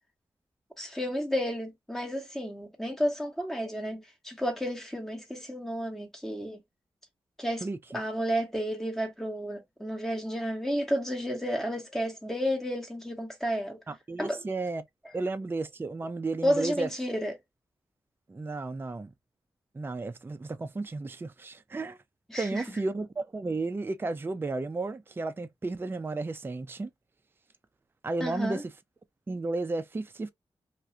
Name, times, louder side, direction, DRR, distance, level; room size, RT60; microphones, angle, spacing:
voice 1, 0.8-6.6 7.4-7.6 7.9-13.8 14.2-14.4 16.4-17.3 22.3-22.6 28.2-28.6, equal, 5° left, 0.8 m, -31 dB
voice 2, 13.9-14.8 15.1-16.9 18.3-19.1 19.7-22.0 22.4-26.9 28.0-28.7 29.3-30.3, right 3 dB, 25° right, 0.4 m, -33 dB
2.4 x 2.3 x 2.7 m
cardioid pair, 55°, 10 cm